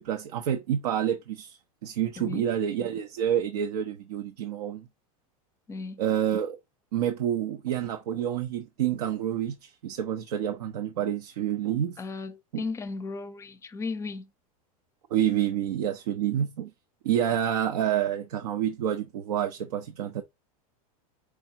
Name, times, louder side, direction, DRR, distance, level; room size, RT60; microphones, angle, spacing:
voice 1, 0.0-4.9 6.0-6.6 6.9-12.0 12.5-12.6 15.1-16.7 17.0-20.2, right 10 dB, 85° right, 0.7 m, -28 dB
voice 2, 5.7-6.0 12.0-14.3, left 4 dB, 15° left, 0.5 m, -35 dB
4.7 x 3.5 x 2.8 m
supercardioid pair, 125°, 19 cm